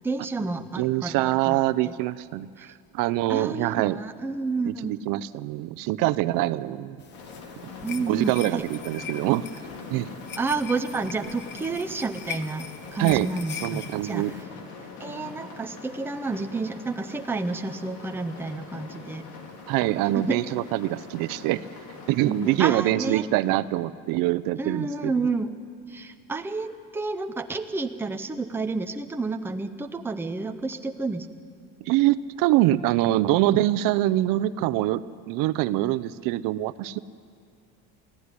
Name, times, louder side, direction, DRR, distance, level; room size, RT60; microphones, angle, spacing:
voice 1, 0.0-1.6 1.8-1.9 2.6-2.7 3.3-4.9 7.8-8.6 10.4-14.3 15.0-19.3 20.1-20.4 22.3-23.3 24.6-25.5 25.9-31.3, right 3 dB, 5° right, 6 dB, 0.7 m, -30 dB
voice 2, 0.8-4.0 4.7-7.0 8.1-9.5 9.9-10.1 13.0-13.3 13.6-14.3 19.7-21.6 22.1-25.1 31.8-37.0, right 15 dB, 70° right, 16 dB, 0.7 m, -24 dB
sound 1, 7.0-14.4, left 8 dB, 30° left, 1.0 m, -41 dB
sound 2, 7.1-22.7, left 4 dB, 85° left, 3.4 m, -43 dB
23.0 x 15.5 x 9.7 m, 2.2 s
cardioid pair, 160°, 34 cm